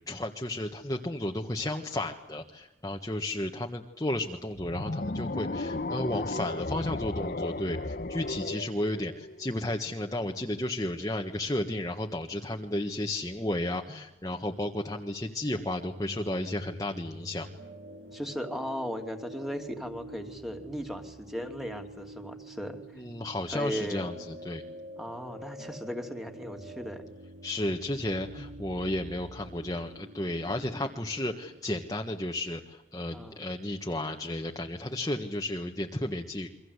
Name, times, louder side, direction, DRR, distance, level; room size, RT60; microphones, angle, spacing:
voice 1, 0.1-17.5 22.9-24.6 27.4-36.5, left 1 dB, 20° left, 2 dB, 1.5 m, -33 dB
sound 1, 4.6-9.8, left 2 dB, 50° left, 1.0 m, -34 dB
sound 2, 15.6-31.6, right 1 dB, 70° right, 3.2 m, -46 dB
voice 2, 18.1-22.8 23.5-24.0 25.0-27.0 33.1-33.5, equal, ahead, 5 dB, 2.7 m, -37 dB
29.5 x 24.0 x 8.2 m, 0.94 s
head